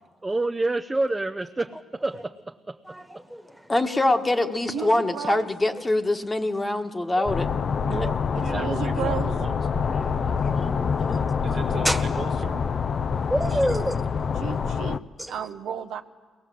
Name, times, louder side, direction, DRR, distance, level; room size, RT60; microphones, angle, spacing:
voice 1, 0.2-3.0 8.4-9.1 9.8-10.4, right 2 dB, 20° right, 0.7 m, -29 dB
voice 2, 2.8-3.7 4.8-4.9 7.1-7.3 10.2-10.8 11.8-12.0 13.1-14.0 15.2-15.3, equal, ahead, 1.5 m, -28 dB
voice 3, 3.7-7.5 11.1-11.2, left 2 dB, 20° left, 1.4 m, -24 dB
voice 4, 4.7-5.5 8.3-9.3 14.4-16.0, right 8 dB, 75° right, 0.9 m, -33 dB
sound 1, 7.3-15.0, left 6 dB, 50° left, 0.6 m, -26 dB
voice 5, 7.8-8.2 8.5-9.6 11.4-12.6 13.4-14.0, right 5 dB, 50° right, 1.2 m, -36 dB
22.5 x 19.0 x 7.7 m
cardioid pair, 90°, 0 cm